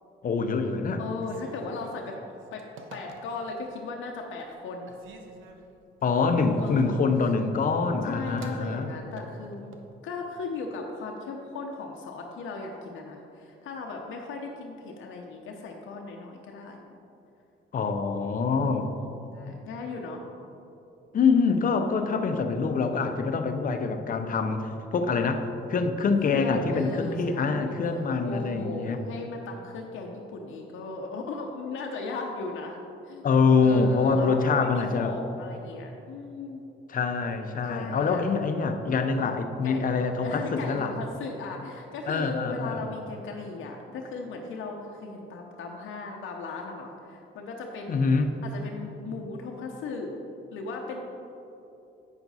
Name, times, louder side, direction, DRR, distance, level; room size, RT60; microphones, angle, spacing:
voice 1, 0.2-1.0 6.0-8.9 17.7-18.9 21.1-25.4 25.7-29.0 33.2-35.1 36.9-40.9 42.1-42.8 47.9-48.4, left 4 dB, 45° left, 6 dB, 0.7 m, -25 dB
voice 2, 1.0-2.1 2.5-2.6 2.9-4.9 6.4-7.2 8.0-9.7 10.0-16.9 18.4-20.3 21.8-22.3 26.3-33.3 33.6-36.6 37.6-38.3 39.6-39.9 40.2-48.1 48.4-50.1 50.5-51.1, left 3 dB, 80° left, 1 dB, 0.7 m, -37 dB
Telephone, 1.1-3.6 4.1-4.6 4.9-9.9, right 3 dB, 80° right, 0.8 m, -49 dB
8.0 x 5.9 x 4.1 m, 2.9 s
cardioid pair, 90°, 20 cm